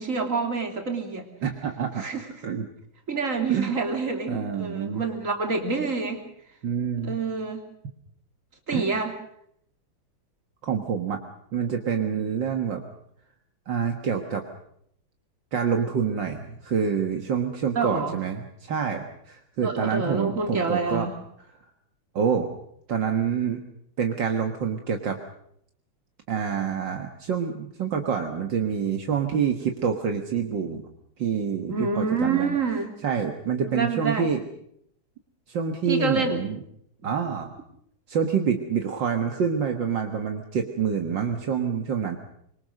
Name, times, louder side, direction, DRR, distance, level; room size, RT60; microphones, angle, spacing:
voice 1, 0.0-1.3 2.0-2.3 3.1-6.2 7.0-7.6 8.7-9.2 17.8-18.2 19.6-21.2 31.7-32.9 33.7-34.3 35.9-36.4, right 4 dB, 40° right, 4 dB, 3.5 m, -27 dB
voice 2, 1.4-2.0 2.4-2.7 3.5-3.7 4.3-5.0 6.6-7.2 8.7-8.9 10.7-11.2 11.5-12.8 13.7-14.4 15.5-21.1 22.1-22.5 22.9-23.6 24.0-25.2 26.3-30.8 31.2-32.6 33.0-34.4 35.5-36.6 37.0-37.5 38.1-42.2, right 7 dB, 70° right, 4 dB, 2.2 m, -27 dB
25.0 x 23.5 x 6.5 m, 0.71 s
omnidirectional pair, 2.1 m